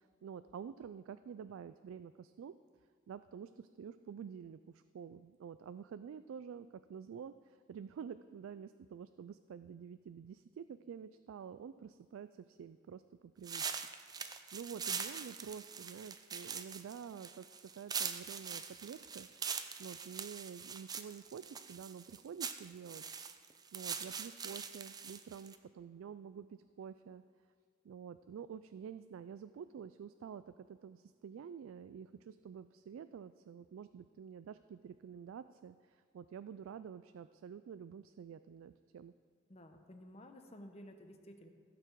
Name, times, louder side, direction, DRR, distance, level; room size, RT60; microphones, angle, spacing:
voice 1, 0.0-2.5 3.1-13.6 14.1-17.5 17.8-23.0 23.7-27.2 27.8-39.1, right 7 dB, 85° right, 12 dB, 0.3 m, -49 dB
sound 1, 13.4-25.6, right 6 dB, 20° right, 0.4 m, -43 dB
voice 2, 39.5-41.5, equal, 30° left, 5 dB, 0.9 m, -53 dB
15.5 x 6.9 x 4.6 m, 2.1 s
head